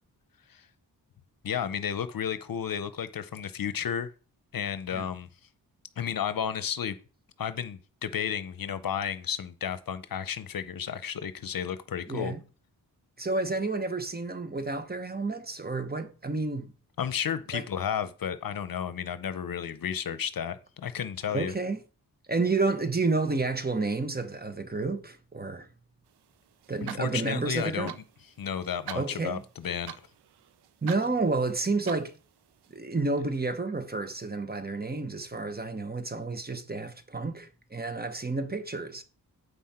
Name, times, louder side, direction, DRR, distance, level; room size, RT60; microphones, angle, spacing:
voice 1, 1.4-4.1 4.5-5.3 6.0-7.0 7.4-12.3 17.0-21.5 26.8-27.9 28.4-29.9, left 8 dB, 60° left, 0.8 m, -32 dB
voice 2, 12.1-12.4 13.2-16.7 17.5-17.6 21.3-21.8 22.3-25.7 26.7-27.9 28.9-29.4 30.8-32.1 32.7-39.0, right 3 dB, 25° right, 1.2 m, -30 dB
sound 1, 26.1-32.8, right 10 dB, 90° right, 0.6 m, -47 dB
8.2 x 5.6 x 4.3 m
cardioid pair, 60°, 38 cm